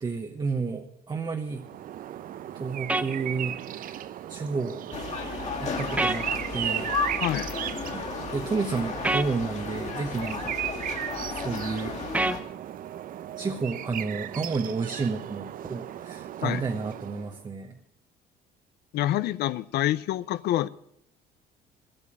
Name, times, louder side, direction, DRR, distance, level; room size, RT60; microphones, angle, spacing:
voice 1, 0.0-1.7 2.5-5.0 5.6-7.0 7.5-7.6 7.9-8.0 8.3-10.6 11.3-12.0 13.4-17.8, right 4 dB, 25° right, 1.0 m, -31 dB
sound 1, 1.5-17.4, right 11 dB, 55° right, 0.6 m, -36 dB
sound 2, 2.9-3.1 6.0-6.2 9.0-9.3 12.1-12.4, right 2 dB, 10° right, 0.6 m, -25 dB
sound 3, 4.9-12.4, left 5 dB, 45° left, 2.6 m, -34 dB
voice 2, 7.2-7.5 16.4-16.6 18.9-20.7, left 14 dB, 75° left, 0.5 m, -27 dB
12.5 x 8.8 x 8.7 m
cardioid pair, 110°, 17 cm